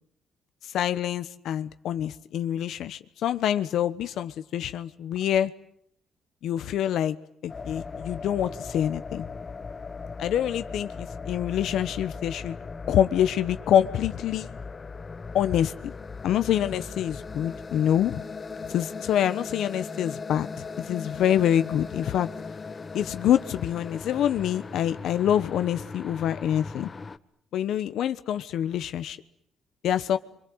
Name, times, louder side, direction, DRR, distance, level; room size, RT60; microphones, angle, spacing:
voice 1, 0.7-5.5 6.4-7.2 7.4-9.3 10.2-12.6 12.9-14.5 15.3-15.9 16.2-18.2 18.7-20.5 20.8-22.3 22.9-26.9 27.5-29.2 29.8-30.2, left 10 dB, 75° left, 11 dB, 1.1 m, -26 dB
sound 1, 7.5-27.2, left 4 dB, 35° left, 1.3 m, -38 dB
29.0 x 25.5 x 8.0 m, 0.70 s
cardioid pair, 90°, 0 cm